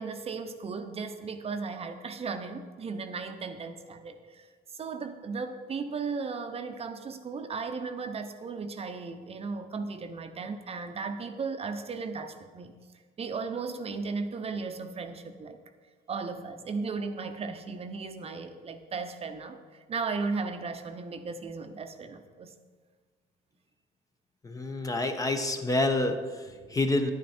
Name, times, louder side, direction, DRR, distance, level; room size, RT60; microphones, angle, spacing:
voice 1, 0.0-12.7 13.2-15.6 16.1-19.6 19.9-22.5, right 4 dB, 35° right, 8 dB, 0.8 m, -36 dB
voice 2, 24.4-27.1, left 2 dB, 20° left, 7 dB, 0.9 m, -28 dB
10.5 x 9.5 x 4.4 m, 1.5 s
cardioid pair, 110°, 17 cm